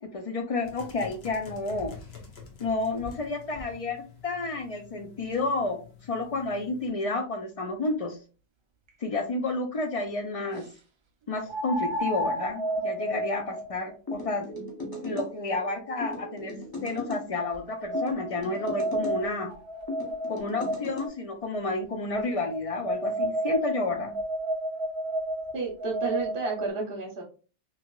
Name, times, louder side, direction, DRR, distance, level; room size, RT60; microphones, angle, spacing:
voice 1, 0.0-1.9 2.6-5.8 6.0-8.2 9.0-10.6 11.3-14.5 14.9-19.5 20.3-24.1, left 2 dB, 55° left, 5 dB, 0.4 m, -31 dB
sound 1, 0.6-6.9, left 3 dB, 80° left, 1.1 m, -47 dB
sound 2, 8.9-9.0 11.5-16.6 17.4-21.1 22.1-26.7, right 1 dB, 50° right, 0.3 m, -32 dB
sound 3, 14.1-15.3 16.0-17.2 17.9-19.2 19.9-21.1, left 2 dB, 25° left, 0.7 m, -37 dB
voice 2, 25.5-27.2, right 4 dB, 75° right, 0 dB, 0.9 m, -31 dB
2.9 x 2.8 x 2.2 m, 0.35 s
omnidirectional pair, 1.0 m